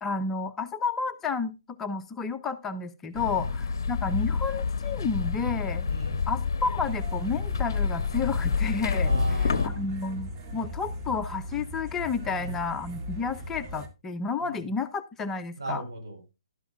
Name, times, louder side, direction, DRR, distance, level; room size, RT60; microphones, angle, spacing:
voice 1, 0.0-5.9 6.3-15.8, left 4 dB, 15° left, 9 dB, 0.6 m, -31 dB
sound 1, 3.1-9.7, left 5 dB, 55° left, 0.7 m, -28 dB
voice 2, 3.3-3.6 5.8-6.2 9.0-9.8 12.2-12.7 14.4-14.6 15.6-16.3, right 2 dB, 75° right, 3 dB, 4.6 m, -37 dB
sound 2, 6.8-13.9, left 1 dB, 30° right, 1.9 m, -38 dB
12.0 x 11.0 x 2.4 m, 0.26 s
figure-of-eight pair, 130°, 2 cm